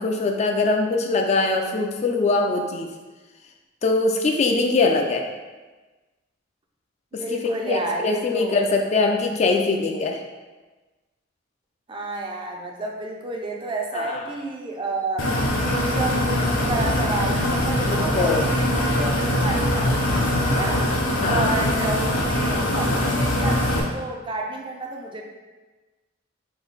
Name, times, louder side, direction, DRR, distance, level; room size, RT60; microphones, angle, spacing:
voice 1, 0.0-2.9 3.8-5.3 7.1-10.2 13.9-14.2 17.8-18.5 21.2-21.7, left 3 dB, 35° left, 2 dB, 0.3 m, -22 dB
voice 2, 7.1-8.6 11.9-15.3 15.6-20.9 21.2-25.2, right 2 dB, 25° right, 1 dB, 0.4 m, -30 dB
sound 1, 15.2-23.8, left 1 dB, 80° left, 0.7 m, -22 dB
3.6 x 2.6 x 4.0 m, 1.2 s
head